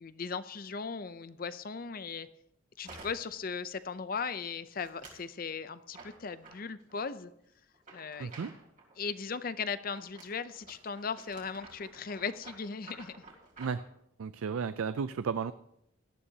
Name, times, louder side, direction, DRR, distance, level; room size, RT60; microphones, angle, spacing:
voice 1, 0.0-2.3 2.8-7.3 7.9-8.3 9.0-13.2, left 5 dB, 45° left, 13 dB, 0.5 m, -38 dB
sound 1, 2.8-3.4 3.8-4.2 4.7-5.3 5.9-7.1 7.7-9.0 9.9-13.9, right 3 dB, 40° right, 3.0 m, -52 dB
voice 2, 8.2-8.5 13.6-13.8 14.2-15.5, right 6 dB, 85° right, 13 dB, 0.4 m, -33 dB
18.0 x 12.5 x 2.8 m, 0.77 s
head